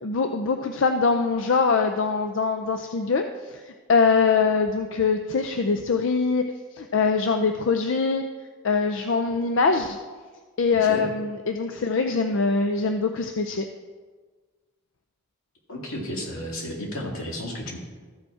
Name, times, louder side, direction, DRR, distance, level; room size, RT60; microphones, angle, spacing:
voice 1, 0.0-3.2 3.5-6.4 6.8-8.2 8.6-10.0 10.6-13.7, left 4 dB, 65° left, 6 dB, 0.5 m, -23 dB
voice 2, 15.7-17.8, equal, 85° left, -1 dB, 2.0 m, -33 dB
13.5 x 5.1 x 4.8 m, 1.4 s
head